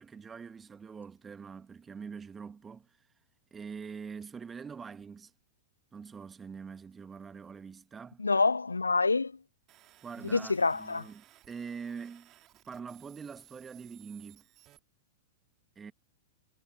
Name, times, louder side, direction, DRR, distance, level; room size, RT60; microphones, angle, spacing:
voice 1, 0.0-2.9 3.5-5.3 5.9-8.2 10.0-12.3 12.7-14.4 15.8-15.9, right 6 dB, 15° right, 1.7 m, -44 dB
voice 2, 8.2-9.3 10.3-11.1, left 3 dB, 85° left, 0.3 m, -27 dB
sound 1, 9.7-14.8, right 15 dB, 35° right, 2.8 m, -60 dB
figure-of-eight pair, 100°, 0 cm